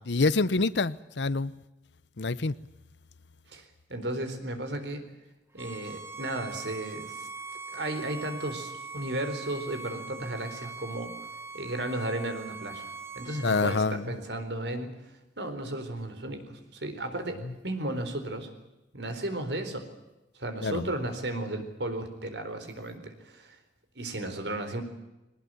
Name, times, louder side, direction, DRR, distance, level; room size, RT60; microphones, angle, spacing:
voice 1, 0.1-1.5 2.2-2.5 13.4-14.0 20.6-20.9, left 3 dB, 75° left, 0.8 m, -26 dB
voice 2, 3.5-5.0 5.5-7.3 7.7-11.1 11.5-12.9 13.2-14.9 15.4-18.5 18.9-19.9 20.3-23.6 24.0-24.8, right 1 dB, 75° right, 4.2 m, -34 dB
Bowed string instrument, 5.6-13.8, right 4 dB, 15° right, 1.8 m, -42 dB
21.5 x 19.5 x 9.2 m
head